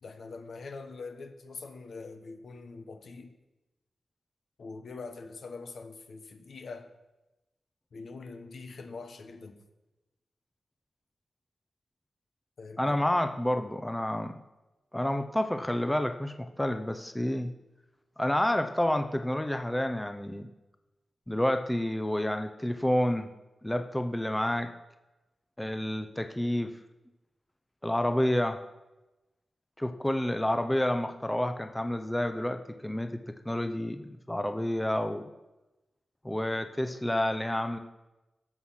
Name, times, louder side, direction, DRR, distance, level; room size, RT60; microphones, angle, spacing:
voice 1, 0.0-3.4 4.6-6.9 7.9-9.6 12.6-13.0, left 4 dB, 70° left, 7 dB, 1.2 m, -43 dB
voice 2, 12.8-14.4 14.9-17.5 18.2-20.5 21.3-23.3 23.6-24.7 25.6-26.7 27.8-28.6 29.8-33.2 33.4-35.2 36.2-37.8, left 1 dB, 10° left, 7 dB, 0.6 m, -29 dB
14.5 x 6.3 x 5.8 m, 1.0 s
wide cardioid pair, 100°, 0 cm